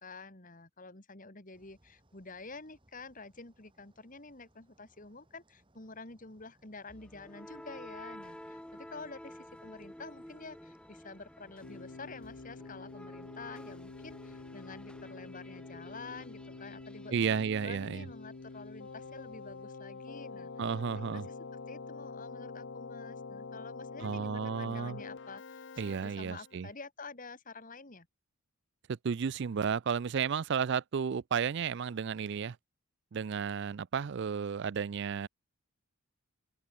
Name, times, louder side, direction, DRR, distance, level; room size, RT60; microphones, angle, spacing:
voice 1, 0.0-20.8 21.1-21.4 21.7-28.1, left 3 dB, 35° left, 2.3 m, -49 dB
sound 1, 1.5-19.7, right 1 dB, 20° right, 4.5 m, -68 dB
sound 2, 6.9-18.8, left 1 dB, 5° left, 0.8 m, -52 dB
Keyboard (musical), 11.6-26.7, left 4 dB, 55° left, 0.7 m, -46 dB
voice 2, 17.1-18.1 20.6-21.3 24.0-25.0 25.8-26.7 28.9-32.6 33.1-35.3, right 6 dB, 50° right, 0.4 m, -33 dB
open air
head